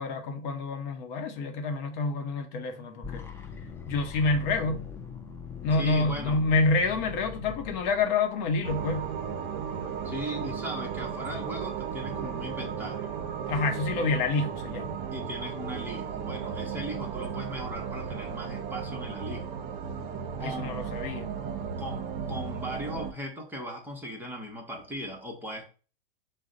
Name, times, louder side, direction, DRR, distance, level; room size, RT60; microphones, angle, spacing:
voice 1, 0.0-3.2 3.9-4.9 5.6-9.1 13.5-14.9 20.4-21.3, left 3 dB, 55° left, 0.8 m, -28 dB
sound 1, 3.0-9.0, left 7 dB, 10° left, 0.4 m, -41 dB
voice 2, 5.8-6.4 10.0-13.2 15.1-19.4 20.4-20.9 21.8-25.7, equal, 5° right, 0.8 m, -38 dB
sound 2, 8.6-23.1, right 7 dB, 45° right, 0.7 m, -35 dB
5.0 x 2.2 x 3.7 m
hypercardioid pair, 125°, 29 cm